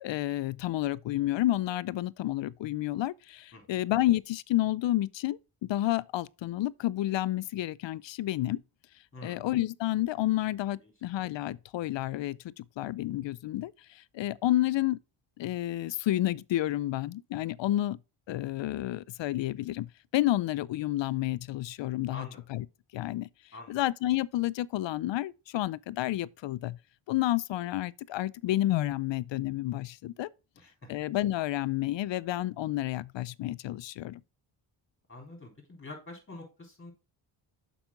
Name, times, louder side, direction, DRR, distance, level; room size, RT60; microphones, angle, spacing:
voice 1, 0.0-8.6 9.2-15.0 15.4-18.0 18.3-22.7 22.9-23.3 23.7-26.8 27.1-30.3 30.9-34.2, left 15 dB, 65° left, 0.5 m, -30 dB
voice 2, 3.5-3.9 9.1-9.4 22.1-22.4 23.5-23.8 30.6-30.9 35.1-36.9, left 2 dB, 25° left, 3.9 m, -46 dB
7.1 x 5.6 x 3.7 m
cardioid pair, 60°, 49 cm